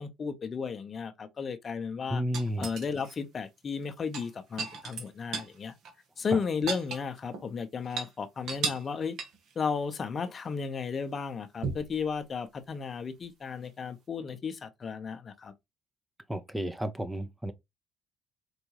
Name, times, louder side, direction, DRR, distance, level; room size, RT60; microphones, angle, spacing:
voice 1, 0.0-2.2 2.6-5.7 6.2-9.2 9.6-15.5, left 5 dB, 40° left, 0.7 m, -34 dB
voice 2, 2.1-2.7 6.3-6.4 16.3-17.5, equal, 10° right, 0.6 m, -32 dB
sound 1, 2.3-3.1 4.0-5.6 5.8-5.9 6.3-7.5 7.8-8.1 8.5-8.9 9.2-9.5 11.6-12.0 13.6-13.7, right 5 dB, 65° right, 1.2 m, -36 dB
4.7 x 2.6 x 3.0 m
hypercardioid pair, 65°, 0 cm